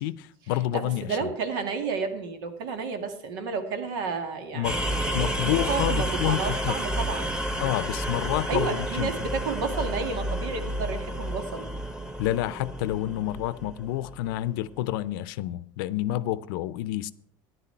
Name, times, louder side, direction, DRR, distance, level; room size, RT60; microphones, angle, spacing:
voice 1, 0.0-1.3 4.5-4.8 5.1-6.8 7.6-9.3 12.2-17.1, left 14 dB, 85° left, 0.6 m, -29 dB
voice 2, 0.7-7.3 8.5-11.7, right 5 dB, 90° right, 2.1 m, -31 dB
sound 1, 4.6-14.4, right 1 dB, 5° right, 1.3 m, -30 dB
13.5 x 10.5 x 4.5 m
supercardioid pair, 125°, 11 cm